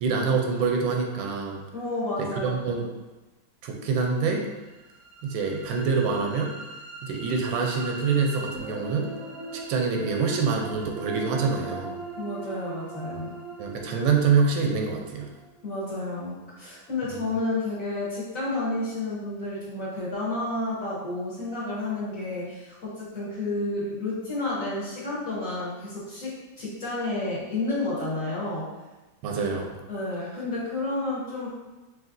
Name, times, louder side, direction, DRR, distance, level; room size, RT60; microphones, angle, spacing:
voice 1, 0.0-1.6 2.2-2.9 3.6-4.5 5.2-6.5 7.0-9.1 9.5-12.0 13.6-15.3 17.0-17.2 29.2-29.8, right 5 dB, 90° right, 2 dB, 1.4 m, -26 dB
voice 2, 1.7-2.8 12.2-13.3 15.6-28.7 29.9-31.5, left 2 dB, 50° left, -8 dB, 1.3 m, -31 dB
sound 1, 4.6-16.7, right 2 dB, 60° right, 1.0 m, -40 dB
5.0 x 3.1 x 2.5 m, 1.1 s
omnidirectional pair, 2.1 m